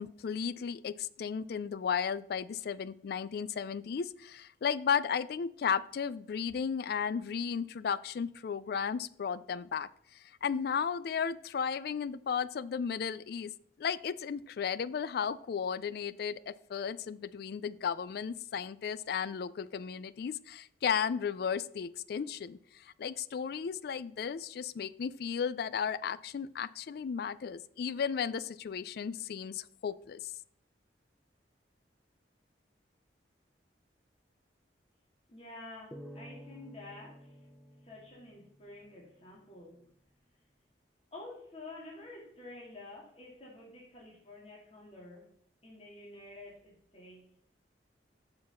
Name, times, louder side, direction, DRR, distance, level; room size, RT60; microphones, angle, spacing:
voice 1, 0.0-13.5 13.8-30.3, left 7 dB, 55° left, 17 dB, 0.3 m, -34 dB
voice 2, 35.3-37.4 37.8-39.8 41.1-45.3 45.6-47.3, left 2 dB, 35° left, -4 dB, 2.2 m, -49 dB
sound 1, 35.9-39.3, equal, 5° left, 0.5 m, -51 dB
6.5 x 4.7 x 5.7 m, 0.66 s
head